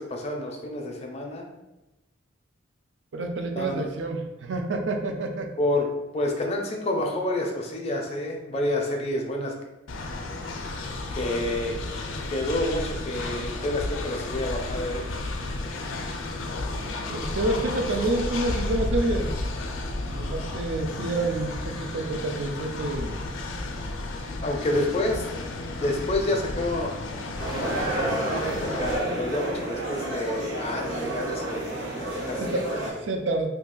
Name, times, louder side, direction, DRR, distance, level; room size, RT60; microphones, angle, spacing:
voice 1, 0.0-1.5 3.5-3.8 5.6-5.9 6.1-9.5 11.1-11.7 12.3-15.0 24.4-25.2 25.8-26.9 27.9-32.6, left 1 dB, 30° left, 1 dB, 0.5 m, -29 dB
voice 2, 3.1-5.5 17.1-19.3 20.0-23.2 32.4-33.5, right 2 dB, 70° right, 4 dB, 0.4 m, -28 dB
Train, 9.9-28.9, left 2 dB, 85° left, 0.4 m, -32 dB
sound 1, 27.4-32.9, right 1 dB, 85° right, 1.1 m, -30 dB
2.8 x 2.3 x 3.7 m, 0.99 s
head